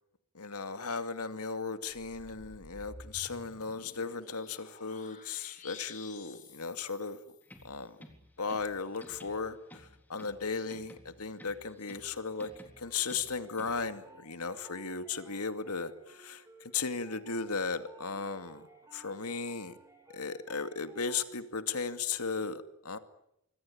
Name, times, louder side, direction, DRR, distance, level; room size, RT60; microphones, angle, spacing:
voice 1, 0.4-7.2 7.6-7.9 8.4-9.6 10.1-12.5 12.8-16.4 16.7-18.6 18.9-19.7 20.1-23.0, left 5 dB, 90° left, 9 dB, 2.4 m, -36 dB
sound 1, 1.9-7.6, left 4 dB, 35° left, 3.7 m, -52 dB
sound 2, 7.4-14.0, left 1 dB, 10° left, 3.7 m, -55 dB
sound 3, 12.5-21.3, right 2 dB, 15° right, 5.0 m, -58 dB
26.0 x 25.0 x 8.7 m, 0.80 s
head